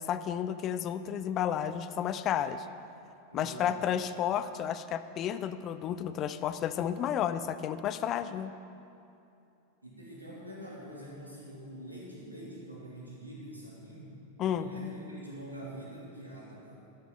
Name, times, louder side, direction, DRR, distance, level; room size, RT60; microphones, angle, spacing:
voice 1, 0.0-2.7 3.3-8.5 14.4-14.7, left 9 dB, 35° left, 12 dB, 0.4 m, -32 dB
voice 2, 3.3-3.9 9.8-14.2 14.5-16.8, equal, 85° right, -5 dB, 2.7 m, -45 dB
12.5 x 8.1 x 5.2 m, 2.7 s
figure-of-eight pair, 90°, 0 cm